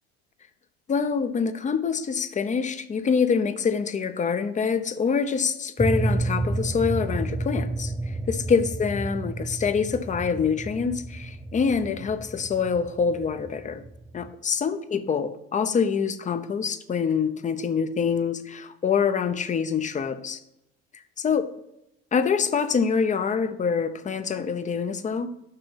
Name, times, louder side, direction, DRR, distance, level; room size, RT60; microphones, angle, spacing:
voice 1, 0.9-13.8 14.1-20.4 21.2-21.5 22.1-25.3, left 6 dB, 25° left, 12 dB, 0.6 m, -25 dB
sound 1, 5.8-14.3, right 2 dB, 5° right, 0.3 m, -31 dB
6.7 x 5.9 x 5.7 m, 0.85 s
supercardioid pair, 100°, 31 cm